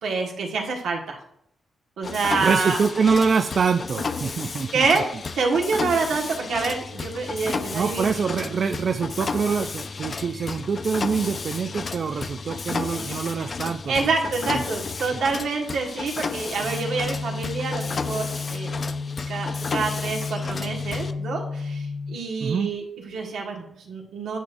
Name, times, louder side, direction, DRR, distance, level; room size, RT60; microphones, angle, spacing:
voice 1, 0.0-1.2 2.0-2.8 4.7-5.0 5.3-8.1 13.9-18.8 19.3-24.4, right 4 dB, 85° right, 0 dB, 1.5 m, -27 dB
Mechanisms, 2.0-21.1, left 4 dB, 45° left, 0.4 m, -33 dB
voice 2, 2.4-5.0 7.7-14.1 14.5-14.6 15.1-15.2 22.4-22.7, right 5 dB, 55° right, 6 dB, 0.4 m, -25 dB
sound 1, 16.6-22.1, left 4 dB, 85° left, 1.4 m, -31 dB
10.0 x 6.2 x 2.6 m, 0.72 s
cardioid pair, 90°, 0 cm